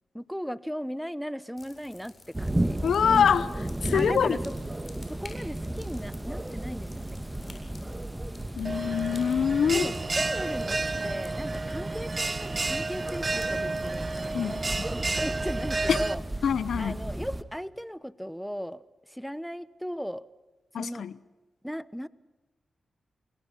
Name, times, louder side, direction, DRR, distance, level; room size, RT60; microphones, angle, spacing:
voice 1, 0.1-2.8 3.9-4.5 5.1-7.6 9.7-16.2 16.8-20.3 20.8-21.1 21.6-22.1, equal, ahead, 1.0 m, -37 dB
sound 1, 1.6-17.8, left 3 dB, 40° left, 7.8 m, -54 dB
sound 2, 2.3-17.4, right 1 dB, 15° right, 1.7 m, -35 dB
voice 2, 2.8-4.4 8.6-9.9 14.3-14.6 15.9-16.0 16.4-17.0 20.7-21.1, left 7 dB, 75° left, 0.8 m, -25 dB
Bell, 8.6-16.1, right 3 dB, 40° right, 1.1 m, -31 dB
29.0 x 21.5 x 5.9 m
supercardioid pair, 40°, 0 cm